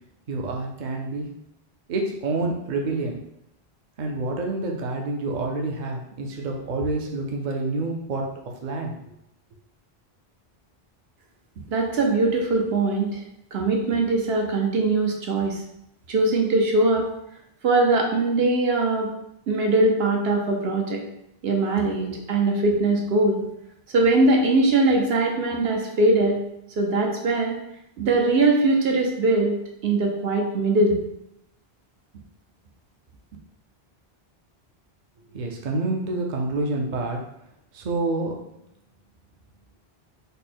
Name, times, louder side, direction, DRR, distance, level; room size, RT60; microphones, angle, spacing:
voice 1, 0.3-1.3 1.9-3.2 4.0-8.3 8.6-8.9 35.3-37.2 37.7-38.3, right 2 dB, 50° right, 1 dB, 0.7 m, -28 dB
voice 2, 11.7-13.2 13.5-15.6 16.1-17.1 17.6-19.1 19.5-21.0 21.4-23.4 23.9-26.4 26.8-27.6 28.0-29.6 29.8-31.0, right 2 dB, 75° right, 1 dB, 1.0 m, -21 dB
5.2 x 2.2 x 4.2 m, 0.81 s
omnidirectional pair, 1.0 m